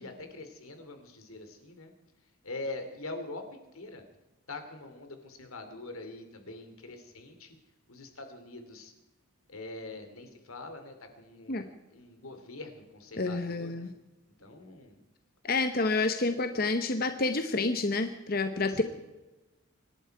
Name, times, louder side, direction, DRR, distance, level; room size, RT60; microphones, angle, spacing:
voice 1, 0.0-1.9 2.4-4.0 4.5-7.5 7.9-8.9 9.5-13.9 14.4-15.0 18.7-18.8, left 2 dB, 85° left, 7 dB, 2.7 m, -43 dB
voice 2, 13.2-13.9 15.4-18.8, left 3 dB, 45° left, 8 dB, 0.9 m, -29 dB
26.0 x 11.5 x 4.7 m, 1.0 s
head